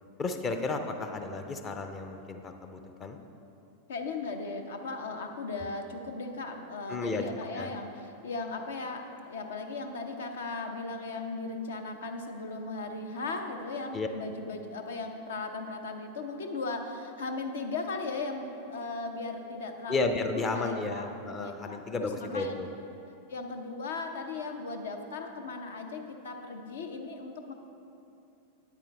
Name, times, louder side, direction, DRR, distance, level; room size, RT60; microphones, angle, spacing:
voice 1, 0.2-3.2 6.9-7.2 7.6-7.7 13.9-14.1 19.9-22.7, left 3 dB, 25° left, 6 dB, 0.6 m, -33 dB
voice 2, 3.9-22.6 23.3-27.5, left 3 dB, 65° left, 5 dB, 0.6 m, -37 dB
9.2 x 8.5 x 3.3 m, 2.8 s
figure-of-eight pair, 90°, 0 cm